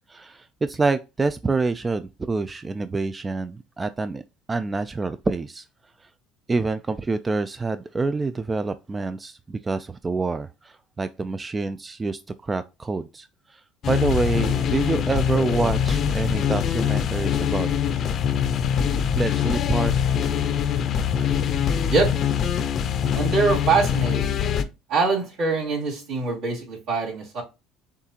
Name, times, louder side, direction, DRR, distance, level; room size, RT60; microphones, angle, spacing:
voice 1, 0.1-4.2 4.5-5.7 6.0-6.1 6.5-17.7 18.9-19.9, right 3 dB, 20° right, 0.3 m, -27 dB
sound 1, 13.8-24.6, left 8 dB, 50° left, 0.6 m, -23 dB
voice 2, 23.1-24.3 24.9-27.4, right 4 dB, 70° right, 2.6 m, -23 dB
7.1 x 2.4 x 2.8 m
supercardioid pair, 90°, 0 cm